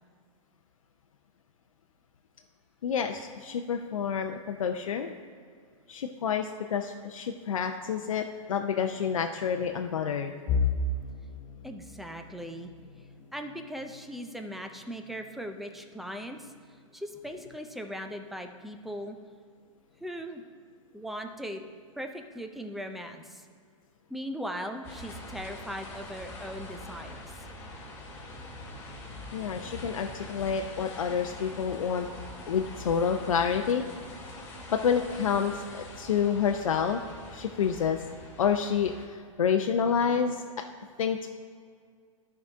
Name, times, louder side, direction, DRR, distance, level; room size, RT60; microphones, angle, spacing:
voice 1, 2.8-5.1 5.9-10.3 29.3-32.1 32.5-33.8 34.7-37.0 37.3-38.0 38.4-40.4 41.0-41.3, left 7 dB, 85° left, 4 dB, 0.5 m, -28 dB
sound 1, 10.5-22.3 22.7-23.0 23.4-23.5 24.4-24.9, left 4 dB, 35° left, 0.7 m, -38 dB
voice 2, 11.6-12.7 13.3-16.5 16.9-19.2 20.0-20.4 20.9-21.6 22.0-23.5 24.1-27.5, equal, ahead, 5 dB, 0.5 m, -39 dB
sound 2, 24.8-39.1, left 2 dB, 15° left, 2.1 m, -44 dB
12.5 x 4.8 x 3.6 m, 2.1 s
hypercardioid pair, 130°, 17 cm